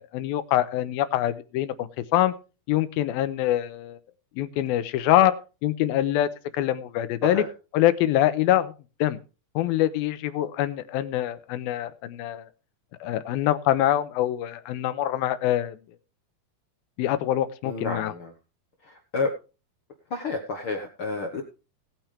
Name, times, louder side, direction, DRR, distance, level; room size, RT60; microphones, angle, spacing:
voice 1, 0.0-2.3 2.7-4.0 4.4-5.4 5.6-7.4 7.7-8.7 9.0-9.2 9.6-12.5 13.0-15.8 17.0-18.1, left 13 dB, 85° left, 12 dB, 2.6 m, -24 dB
voice 2, 17.6-18.3 18.8-19.3 20.1-21.4, left 3 dB, 60° left, 4 dB, 1.4 m, -30 dB
18.5 x 8.9 x 3.3 m, 0.32 s
omnidirectional pair, 4.3 m